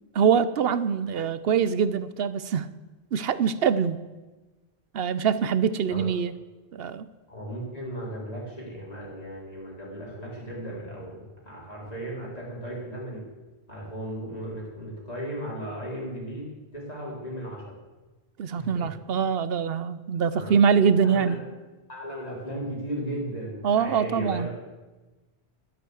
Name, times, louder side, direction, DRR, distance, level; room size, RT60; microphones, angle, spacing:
voice 1, 0.1-2.7 3.1-4.0 4.9-6.3 6.7-7.1 18.4-21.3 23.6-24.5, right 7 dB, 65° right, 15 dB, 0.9 m, -24 dB
voice 2, 7.3-13.3 13.7-17.7 18.5-18.9 20.3-20.6 21.0-21.3 21.9-24.5, right 1 dB, 35° left, -5 dB, 4.1 m, -36 dB
11.5 x 10.0 x 8.0 m, 1.2 s
omnidirectional pair, 1.1 m